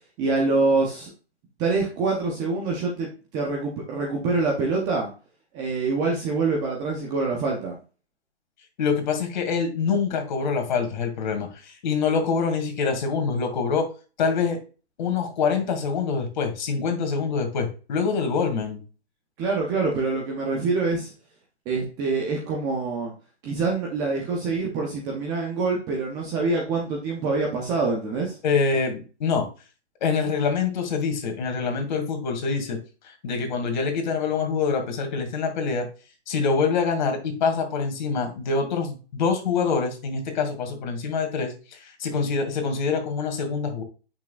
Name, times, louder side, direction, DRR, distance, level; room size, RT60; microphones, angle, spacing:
voice 1, 0.2-1.1 1.6-5.1 5.5-7.8 19.4-21.1 21.7-23.1 23.4-28.4, right 3 dB, 10° right, -1 dB, 0.5 m, -25 dB
voice 2, 8.8-13.9 14.2-14.6 15.0-18.8 28.4-29.5 30.0-32.8 33.0-35.9 36.3-43.8, left 5 dB, 40° left, 5 dB, 2.1 m, -25 dB
8.3 x 6.0 x 2.3 m, 0.35 s
hypercardioid pair, 150°, 34 cm